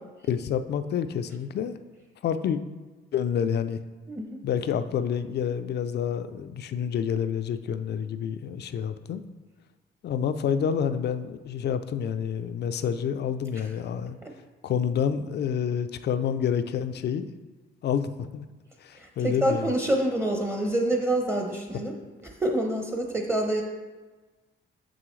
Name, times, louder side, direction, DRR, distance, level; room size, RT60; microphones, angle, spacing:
voice 1, 0.3-1.8 2.2-2.6 3.1-3.8 4.4-9.2 10.0-14.2 14.6-17.3 17.8-18.4 18.8-19.7, left 8 dB, 55° left, 11 dB, 0.5 m, -28 dB
voice 2, 19.0-21.9 22.2-23.6, right 1 dB, 15° right, 1 dB, 0.9 m, -26 dB
6.8 x 6.2 x 3.2 m, 1.3 s
cardioid pair, 90°, 20 cm